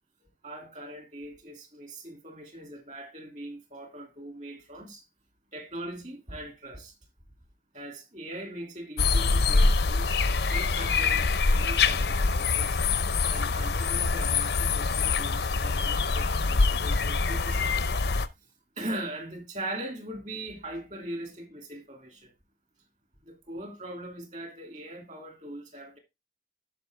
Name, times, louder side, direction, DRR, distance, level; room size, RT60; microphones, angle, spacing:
voice 1, 0.4-5.0 5.5-6.9 7.7-10.1 10.5-11.3 11.5-12.8 13.3-17.9 18.8-22.3 23.3-26.0, right 1 dB, 40° right, 2.6 m, -40 dB
sound 1, 9.0-18.3, left 4 dB, 65° left, 0.6 m, -25 dB
12.0 x 5.0 x 3.4 m
head